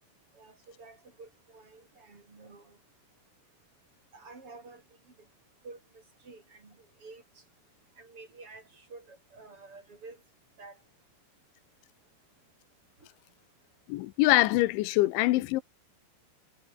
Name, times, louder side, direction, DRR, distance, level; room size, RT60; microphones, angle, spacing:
voice 1, 0.3-2.8 4.1-4.8 5.6-7.2 8.0-10.2 10.6-10.8, right 3 dB, 30° right, 4.9 m, -50 dB
voice 2, 13.9-15.6, left 18 dB, 85° left, 3.3 m, -24 dB
omnidirectional pair, 5.2 m